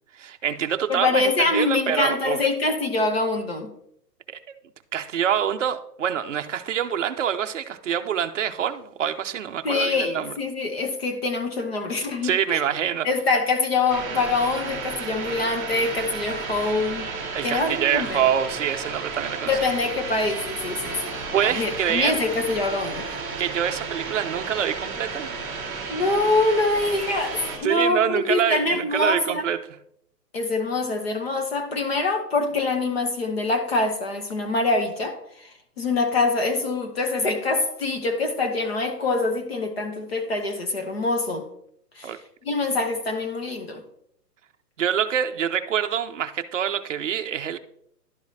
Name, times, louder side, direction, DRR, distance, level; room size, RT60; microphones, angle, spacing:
voice 1, 0.1-2.4 4.3-4.4 4.9-10.3 12.2-13.1 17.3-19.5 21.3-22.2 23.4-25.3 27.6-29.6 42.0-42.2 44.8-47.6, right 9 dB, 50° right, 8 dB, 0.6 m, -25 dB
voice 2, 0.9-3.7 9.6-12.6 13.0-17.1 17.4-18.2 19.5-23.1 25.9-29.5 30.3-41.5 42.0-42.1 42.4-43.8, left 3 dB, 40° left, 6 dB, 1.0 m, -25 dB
sound 1, 13.9-27.6, right 4 dB, 10° right, 1.3 m, -33 dB
11.5 x 4.8 x 2.7 m, 0.71 s
hypercardioid pair, 175°, 48 cm